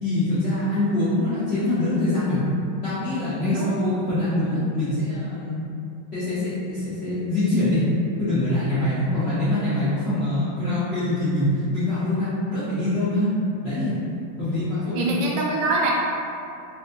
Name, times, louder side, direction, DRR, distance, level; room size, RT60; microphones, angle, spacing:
voice 1, 0.0-2.4 2.8-5.6 6.1-7.8 8.2-13.3 13.6-14.0 14.4-15.1, left 1 dB, 65° left, -15 dB, 0.6 m, -24 dB
voice 2, 3.5-3.9 14.9-15.9, right 3 dB, 75° right, -2 dB, 1.2 m, -24 dB
4.0 x 2.5 x 2.5 m, 2.6 s
omnidirectional pair, 2.3 m